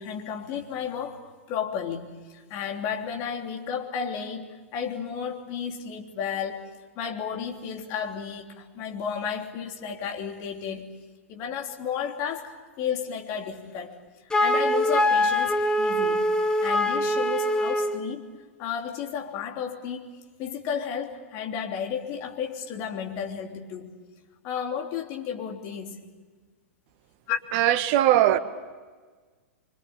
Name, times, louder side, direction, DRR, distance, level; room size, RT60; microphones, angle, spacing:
voice 1, 0.0-6.7 6.9-10.9 11.3-14.0 14.4-16.3 16.6-18.3 18.6-20.1 20.4-24.0 24.4-26.0 27.3-27.4, left 7 dB, 40° left, 2 dB, 3.3 m, -33 dB
Wind instrument woodwind instrument, 14.3-18.0, left 1 dB, 10° left, 1.4 m, -23 dB
voice 2, 27.5-28.4, right 13 dB, 40° right, 11 dB, 1.5 m, -20 dB
26.0 x 25.5 x 8.7 m, 1.4 s
figure-of-eight pair, 100°, 7 cm